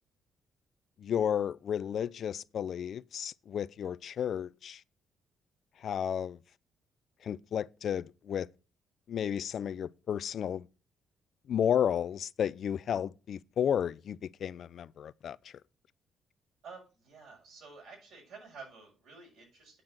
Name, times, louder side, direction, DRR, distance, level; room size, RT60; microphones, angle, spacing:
voice 1, 1.0-4.8 5.8-6.4 7.2-8.5 9.1-10.7 11.5-15.5, left 9 dB, 60° left, 0.4 m, -32 dB
voice 2, 16.6-19.8, right 4 dB, 75° right, 6.4 m, -50 dB
9.0 x 5.9 x 6.4 m
cardioid pair, 110°, 0 cm